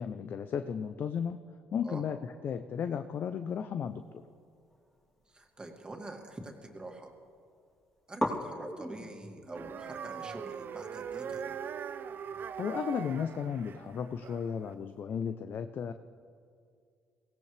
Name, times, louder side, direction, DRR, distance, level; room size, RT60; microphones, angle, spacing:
voice 1, 0.0-1.4 1.7-4.0 12.6-15.9, left 7 dB, 55° left, 9 dB, 0.6 m, -34 dB
sound 1, 4.6-6.4 6.7-7.4 7.6-7.7 8.2-15.0, equal, 10° left, 3.1 m, -42 dB
voice 2, 5.3-7.1 8.1-11.6, right 2 dB, 20° right, 2 dB, 2.4 m, -46 dB
sound 2, 9.5-14.7, right 7 dB, 50° right, 0.7 m, -41 dB
23.0 x 17.0 x 3.4 m, 2.3 s
supercardioid pair, 75°, 4 cm